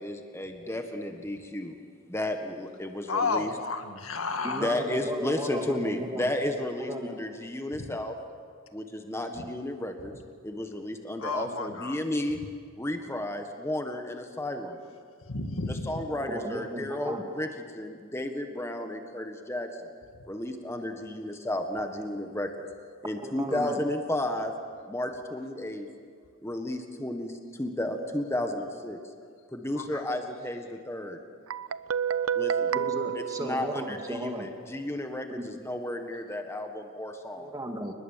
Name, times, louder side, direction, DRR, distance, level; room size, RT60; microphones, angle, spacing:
voice 1, 0.0-1.7 2.1-3.5 4.5-8.1 8.7-10.1 10.4-12.4 12.8-14.8 15.7-17.5 17.7-19.9 20.3-22.5 23.0-24.5 24.9-25.9 26.4-29.0 29.5-31.2 32.3-32.7 33.1-37.5, left 1 dB, 10° left, 5 dB, 1.5 m, -33 dB
voice 2, 3.1-4.7 7.7-7.9 11.2-12.0 15.3-16.0 29.8-30.1, left 4 dB, 75° left, 6 dB, 2.0 m, -32 dB
voice 3, 4.4-6.3 6.9-7.2 16.1-17.3 23.2-23.8 32.7-34.5 35.3-35.4 37.4-37.9, right 1 dB, 15° right, 3 dB, 2.3 m, -35 dB
Guitar, 31.5-34.3, right 8 dB, 75° right, 0.6 m, -30 dB
29.0 x 21.0 x 7.4 m, 2.1 s
head